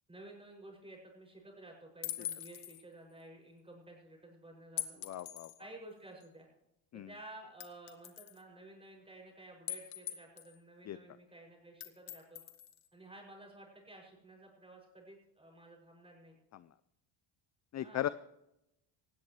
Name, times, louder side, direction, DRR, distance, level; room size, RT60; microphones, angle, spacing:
voice 1, 0.1-5.0 5.6-6.5 6.9-12.4 12.9-16.4 17.8-18.1, right 1 dB, 10° right, 0 dB, 6.4 m, -53 dB
sound 1, 2.0-2.8 4.8-5.6 6.2-6.3 7.6-8.4 9.7-10.5 11.8-12.9, left 12 dB, 75° left, 1.6 m, -42 dB
voice 2, 5.0-5.5 6.9-7.1 10.9-11.0 16.5-16.6 17.7-18.1, left 12 dB, 35° left, 15 dB, 0.4 m, -37 dB
18.5 x 16.0 x 3.2 m, 0.85 s
cardioid pair, 125°, 50 cm